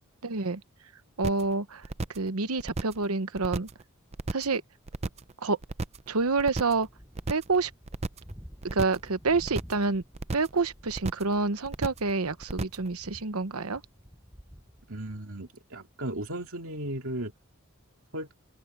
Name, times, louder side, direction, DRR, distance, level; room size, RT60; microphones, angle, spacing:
voice 1, 0.2-0.6 1.2-1.8 2.1-3.7 4.3-4.6 5.4-5.6 6.1-6.9 7.3-7.7 8.6-10.0 10.3-13.8, right 3 dB, 80° right, 1.0 m, -28 dB
sound 1, 1.2-1.5 1.8-2.3 2.6-3.0 3.3-3.8 4.1-4.6 4.9-5.3 5.6-6.1 6.4-6.8 7.1-7.6 7.9-8.3 8.6-9.1 9.4-9.8 10.1-10.6 10.9-11.3 11.6-12.1 12.4-12.9, right 3 dB, 30° right, 0.5 m, -34 dB
sound 2, 6.1-15.2, equal, 10° right, 6.6 m, -51 dB
voice 2, 14.9-17.3 18.1-18.3, right 1 dB, 65° right, 2.4 m, -35 dB
open air
head